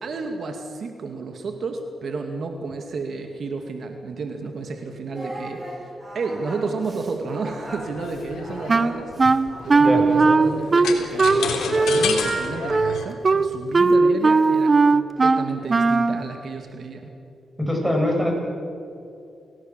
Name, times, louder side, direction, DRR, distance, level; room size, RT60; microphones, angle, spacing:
voice 1, 0.0-17.1, right 4 dB, 65° right, 5 dB, 2.3 m, -32 dB
Singing, 5.1-10.2, right 1 dB, 25° right, 6.5 m, -38 dB
sound 1, 7.6-13.1, left 6 dB, 85° left, 3.4 m, -30 dB
Wind instrument woodwind instrument, 8.7-16.2, right 3 dB, 40° right, 1.0 m, -18 dB
voice 2, 17.6-18.3, left 1 dB, ahead, 1 dB, 7.7 m, -22 dB
29.0 x 18.0 x 7.6 m, 2.6 s
cardioid pair, 65°, 0 cm